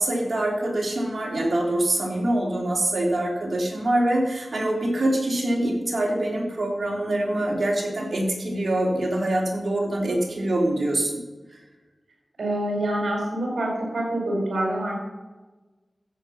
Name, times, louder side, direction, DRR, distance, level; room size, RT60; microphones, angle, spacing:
voice 1, 0.0-11.2, right 1 dB, 65° right, -1 dB, 3.3 m, -24 dB
voice 2, 12.4-15.1, right 1 dB, 80° right, -1 dB, 5.0 m, -26 dB
14.0 x 8.0 x 5.8 m, 1.2 s
cardioid pair, 40°, 0 cm